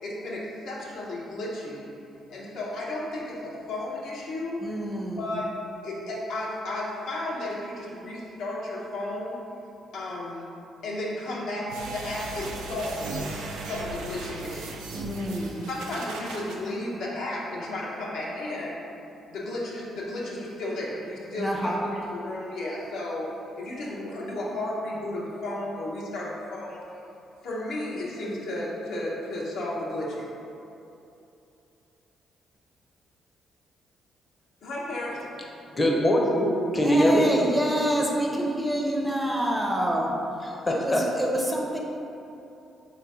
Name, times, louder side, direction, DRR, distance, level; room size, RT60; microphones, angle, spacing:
voice 1, 0.0-1.9 2.3-4.6 5.2-5.5 5.8-9.4 9.9-10.5 10.8-13.3 13.5-15.0 15.7-18.8 19.3-21.7 22.1-23.3 23.6-26.8 27.4-30.3 34.6-35.3, left 1 dB, 75° left, -5 dB, 0.9 m, -33 dB
voice 2, 4.6-5.4 14.9-15.7 21.3-21.8 36.8-40.1 40.7-41.8, equal, 5° right, -2 dB, 0.6 m, -27 dB
sound 1, 11.7-16.6, right 3 dB, 90° right, 0.5 m, -37 dB
voice 3, 35.7-37.3 40.4-41.3, equal, 30° left, -1 dB, 0.7 m, -22 dB
3.3 x 3.0 x 4.7 m, 2.8 s
supercardioid pair, 70°, 0 cm